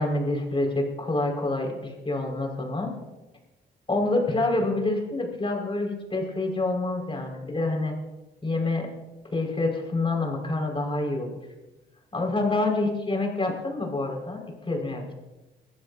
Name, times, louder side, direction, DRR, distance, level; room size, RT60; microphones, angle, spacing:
voice 1, 0.0-2.9 3.9-7.9 8.4-8.9 9.3-11.4 12.1-15.1, left 2 dB, 25° left, 1 dB, 5.4 m, -27 dB
23.0 x 15.0 x 2.8 m, 1.1 s
cardioid pair, 90°, 20 cm